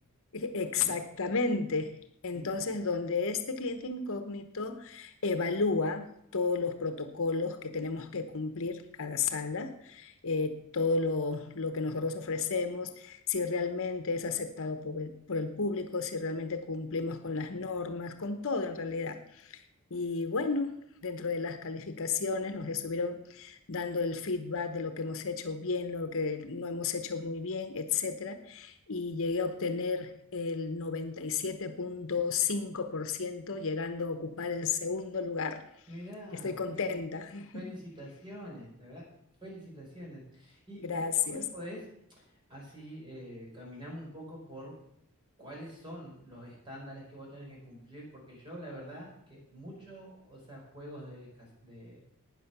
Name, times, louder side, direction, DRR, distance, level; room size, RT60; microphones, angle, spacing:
voice 1, 0.3-1.9 2.2-19.6 19.9-20.7 21.0-35.6 36.3-37.7 40.8-41.4, left 4 dB, 60° left, 8 dB, 1.0 m, -33 dB
voice 2, 35.9-36.9 37.5-39.1 39.4-41.0 41.2-41.9 42.1-44.7 45.4-52.0, equal, 20° right, -3 dB, 5.4 m, -46 dB
12.0 x 9.5 x 6.0 m, 0.75 s
head